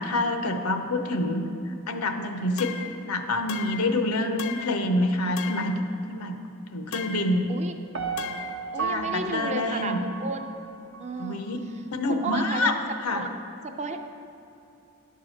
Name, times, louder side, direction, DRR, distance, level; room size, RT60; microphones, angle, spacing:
voice 1, 0.0-2.7 3.1-5.7 6.1-6.4 6.7-7.5 8.8-10.0 11.2-11.6 11.9-12.8 13.0-13.2, left 2 dB, 90° left, 6 dB, 0.8 m, -27 dB
sound 1, 2.6-3.0 3.5-3.9 4.4-4.8 5.4-5.8 6.9-7.4 8.2-8.6, left 8 dB, 65° left, 0.5 m, -37 dB
Piano, 7.9-11.0 11.5-11.6, right 6 dB, 65° right, 0.7 m, -34 dB
voice 2, 8.7-10.6 11.0-11.4 12.0-12.7 13.1-13.3 13.6-14.0, right 3 dB, 30° right, 6 dB, 0.5 m, -33 dB
10.5 x 4.6 x 6.3 m, 2.8 s
head